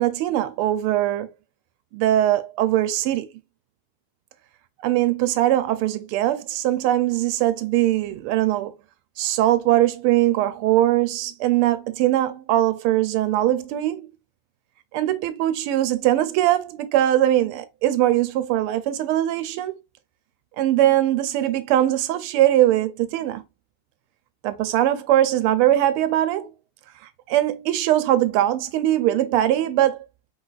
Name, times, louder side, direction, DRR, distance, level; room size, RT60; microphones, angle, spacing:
voice 1, 0.0-1.3 1.9-3.3 4.8-8.7 9.2-14.1 14.9-19.8 20.6-23.4 24.4-26.5 27.3-30.0, right 13 dB, 85° right, 1.5 m, -21 dB
4.5 x 3.9 x 2.4 m
omnidirectional pair, 2.4 m